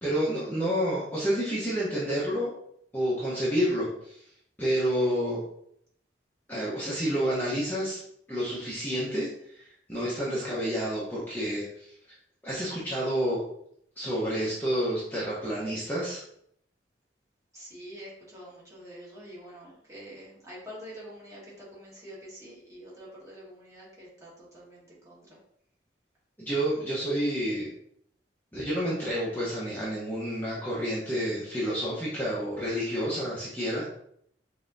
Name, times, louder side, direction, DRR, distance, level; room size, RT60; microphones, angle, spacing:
voice 1, 0.0-2.5 2.9-4.2 4.6-5.4 6.5-8.0 8.3-11.9 12.4-13.4 14.0-16.2 26.4-27.7 28.5-33.9, equal, 10° left, -8 dB, 0.9 m, -29 dB
voice 2, 17.5-25.4, equal, 15° right, -7 dB, 1.7 m, -46 dB
5.3 x 2.9 x 2.6 m, 0.70 s
head